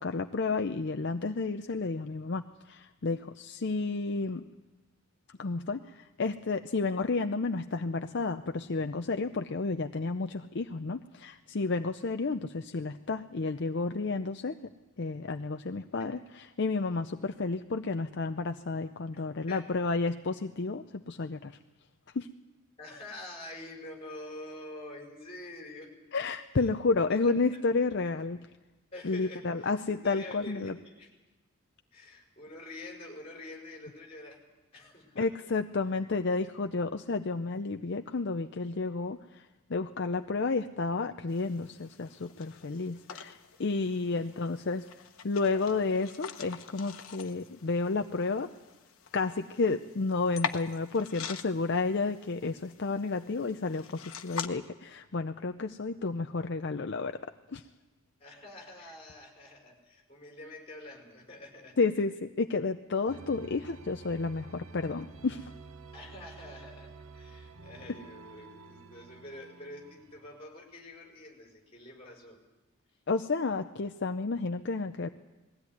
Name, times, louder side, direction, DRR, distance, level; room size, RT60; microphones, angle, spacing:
voice 1, 0.0-4.4 5.4-14.6 15.0-21.6 22.1-22.3 26.1-28.5 29.0-30.7 35.2-44.9 45.2-48.5 49.1-57.2 57.5-57.6 61.8-65.5 73.1-75.1, left 3 dB, 55° left, 7 dB, 0.6 m, -31 dB
voice 2, 22.8-25.9 26.6-26.7 27.2-27.6 28.9-31.1 31.9-34.4 34.7-35.3 58.2-61.8 65.9-72.4, left 1 dB, 30° left, 1 dB, 5.1 m, -47 dB
sound 1, 41.3-54.5, left 7 dB, 90° left, 1.2 m, -44 dB
sound 2, 63.1-70.4, right 4 dB, 80° right, 0.9 m, -50 dB
21.0 x 16.0 x 9.5 m, 1.1 s
head